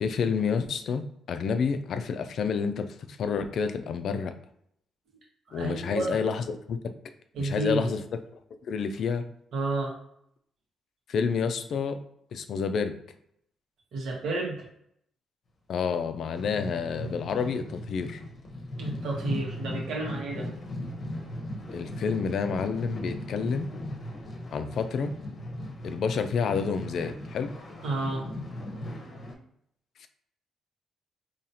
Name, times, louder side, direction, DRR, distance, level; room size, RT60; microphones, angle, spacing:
voice 1, 0.0-4.3 5.5-6.8 7.4-8.0 8.6-9.2 11.1-12.0 12.3-13.0 15.7-18.2 21.7-23.7 24.5-25.1 25.8-27.5 30.0-30.1, left 6 dB, 65° left, 9 dB, 0.4 m, -29 dB
voice 2, 5.5-6.2 7.3-7.9 9.5-9.9 13.9-14.7 18.8-20.5 27.8-28.3, right 2 dB, 75° right, -3 dB, 1.4 m, -31 dB
sound 1, 16.1-29.3, left 1 dB, 45° left, 0.8 m, -38 dB
4.0 x 2.9 x 2.8 m, 0.72 s
cardioid pair, 90°, 0 cm